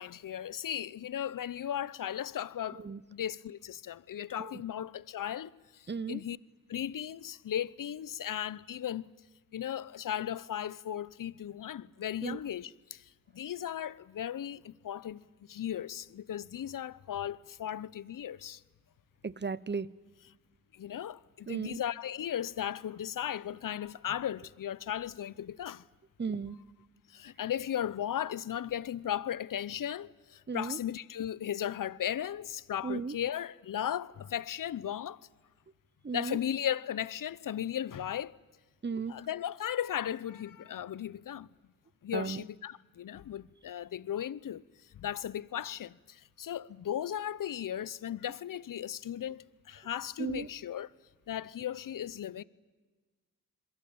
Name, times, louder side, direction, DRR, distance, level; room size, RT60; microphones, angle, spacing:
voice 1, 0.0-2.8 3.1-6.4 6.7-9.1 9.5-15.2 15.5-18.6 20.7-25.8 27.1-35.3 36.1-38.4 39.1-41.5 42.0-44.6 44.9-50.9 51.3-52.4, left 10 dB, 65° left, 0.9 m, -36 dB
voice 2, 5.9-6.2 12.2-12.4 19.2-19.9 21.5-21.8 26.2-26.6 30.5-30.8 32.8-33.2 36.0-36.4 38.8-39.1 42.1-42.4 50.2-50.5, right 5 dB, 30° right, 1.0 m, -35 dB
28.0 x 22.0 x 8.7 m
cardioid pair, 50°, 35 cm